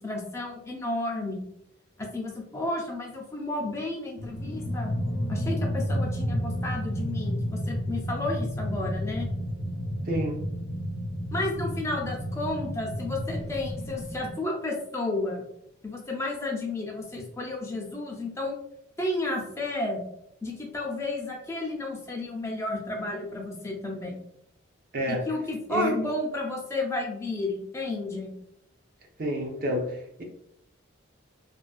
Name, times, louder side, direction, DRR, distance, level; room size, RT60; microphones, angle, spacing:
voice 1, 0.0-1.4 2.0-4.9 5.3-9.3 11.3-15.4 15.8-18.6 19.0-20.0 20.4-24.2 25.1-28.3, left 2 dB, 15° left, -1 dB, 0.4 m, -32 dB
sound 1, 4.2-14.3, equal, 55° left, 0.6 m, -31 dB
voice 2, 10.1-10.4 24.9-25.3 25.7-26.0 29.2-30.2, equal, 45° right, 1 dB, 0.5 m, -29 dB
2.4 x 2.2 x 2.3 m, 0.75 s
head